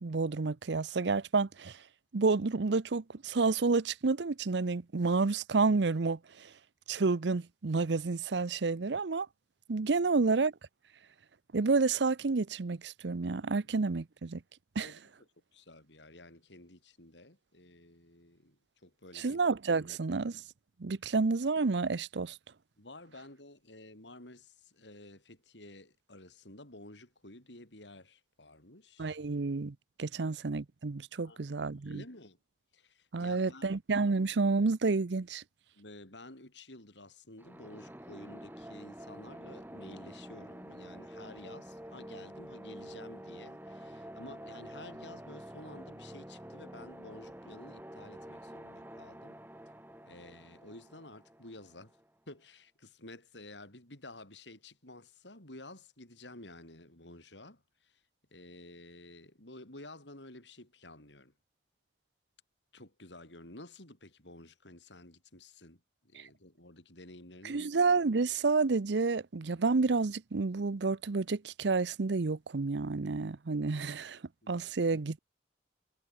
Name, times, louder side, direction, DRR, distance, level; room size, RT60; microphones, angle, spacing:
voice 1, 0.0-1.8 2.1-6.5 6.9-9.3 9.7-10.5 11.5-14.4 14.8-14.9 19.2-20.4 20.8-22.4 29.0-32.0 33.1-35.4 66.2-66.3 67.4-74.2 74.5-75.2, right 4 dB, 80° right, 0.7 m, -30 dB
voice 2, 15.5-19.4 22.8-29.2 30.1-30.3 31.2-31.4 31.8-32.4 32.7-33.7 35.7-49.4 50.1-52.0 52.3-58.0 58.3-61.3 62.7-67.7 74.4-74.7, left 2 dB, 90° left, 7.3 m, -52 dB
sound 1, 37.4-52.1, equal, 10° right, 2.6 m, -48 dB
head